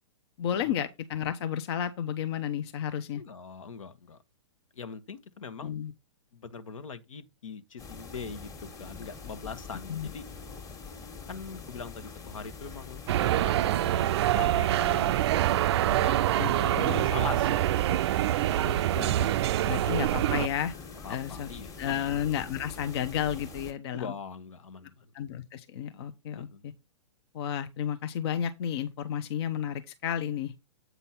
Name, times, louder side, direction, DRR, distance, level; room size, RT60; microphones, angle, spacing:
voice 1, 0.4-3.2 5.6-5.9 9.9-10.1 16.4-16.5 16.8-17.1 18.6-19.3 19.6-20.8 21.1-21.5 21.8-24.1 25.1-26.7 27.3-30.5, left 9 dB, 50° left, 0.8 m, -32 dB
voice 2, 3.1-4.2 4.7-5.8 6.3-10.2 11.3-15.5 15.9-17.6 21.0-22.1 23.9-25.1 26.4-26.6, left 5 dB, 75° left, 1.3 m, -42 dB
sound 1, 7.8-23.7, left 4 dB, 20° left, 1.5 m, -44 dB
sound 2, 13.1-20.5, right 13 dB, 55° right, 0.4 m, -25 dB
8.1 x 4.1 x 5.8 m
hypercardioid pair, 120°, 17 cm